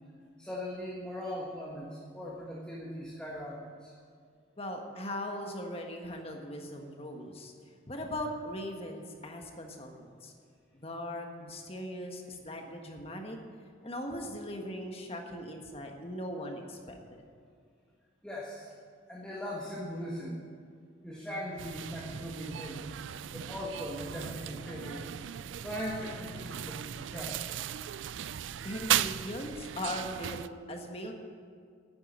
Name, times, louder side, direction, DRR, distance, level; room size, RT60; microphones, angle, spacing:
voice 1, 0.4-3.9 18.2-18.7 19.1-20.4 21.0-22.8 23.3-25.0 25.6-27.4, equal, 5° left, -5 dB, 1.6 m, -39 dB
voice 2, 4.6-7.5 7.9-10.3 10.7-13.4 13.8-17.2 28.6-31.1, left 1 dB, 30° left, 3 dB, 1.5 m, -39 dB
sound 1, 21.6-30.5, right 10 dB, 80° right, 0.4 m, -36 dB
10.5 x 9.6 x 9.8 m, 2.2 s
head